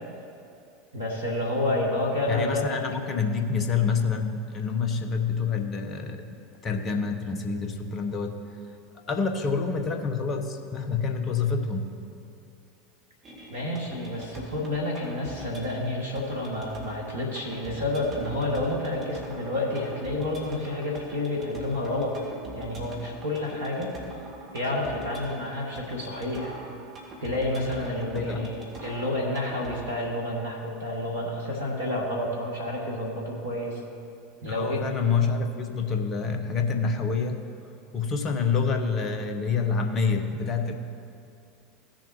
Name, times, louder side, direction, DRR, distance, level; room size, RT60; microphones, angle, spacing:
voice 1, 0.9-2.7 13.5-22.1 22.5-23.9 24.5-26.5 27.2-33.8 34.4-34.8, left 1 dB, 85° right, -3 dB, 1.6 m, -29 dB
voice 2, 2.3-6.2 6.6-8.4 9.1-12.0 28.1-28.5 34.5-37.4 37.9-40.7, left 5 dB, 35° left, 5 dB, 1.1 m, -27 dB
sound 1, 13.2-29.8, right 1 dB, 30° right, 2.4 m, -43 dB
16.5 x 7.0 x 3.1 m, 2.5 s
figure-of-eight pair, 75°, 0 cm